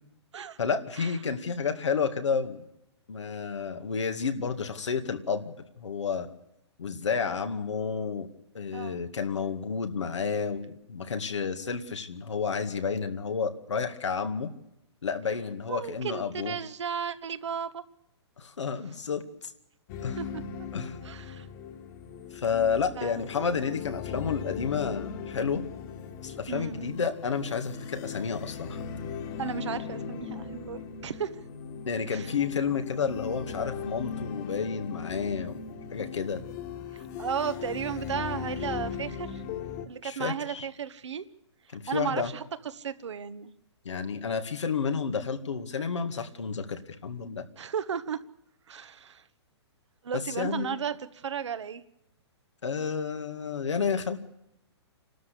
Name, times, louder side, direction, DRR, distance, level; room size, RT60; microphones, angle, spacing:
voice 1, 0.6-2.6 3.1-6.3 6.8-8.3 8.5-14.5 15.0-16.6 18.4-19.5 20.0-20.2 20.7-21.0 22.3-25.6 26.2-28.8 31.9-35.6 35.9-36.4 40.0-40.7 41.7-42.3 43.8-47.5 50.1-50.8 52.6-54.2, left 6 dB, 90° left, 7 dB, 2.2 m, -31 dB
voice 2, 8.7-9.0 15.7-17.8 20.2-20.4 21.0-21.5 23.0-23.8 26.5-27.0 29.4-31.4 32.1-32.3 36.9-39.4 39.8-41.2 41.9-43.5 47.6-48.2 48.7-49.2 50.0-51.8, right 7 dB, 80° right, 11 dB, 1.5 m, -34 dB
sound 1, 19.9-39.9, left 7 dB, 40° left, 2.0 m, -38 dB
28.0 x 12.5 x 8.5 m, 0.85 s
hypercardioid pair, 135°, 15 cm